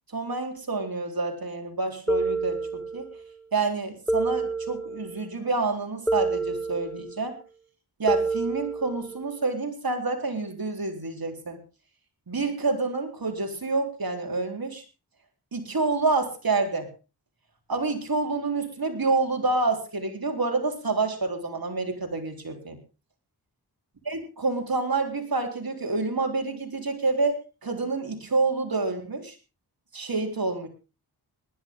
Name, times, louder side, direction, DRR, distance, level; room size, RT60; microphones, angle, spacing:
voice 1, 0.1-3.1 3.5-7.4 8.0-11.6 12.3-14.8 15.5-16.9 17.7-22.8 24.1-29.4 29.9-30.7, right 3 dB, 55° right, 3 dB, 4.0 m, -28 dB
sound 1, 2.1-3.2 4.1-5.3 6.1-7.2 8.1-9.3, right 2 dB, 5° left, 1.7 m, -28 dB
19.0 x 12.0 x 3.7 m, 0.31 s
cardioid pair, 45°, 41 cm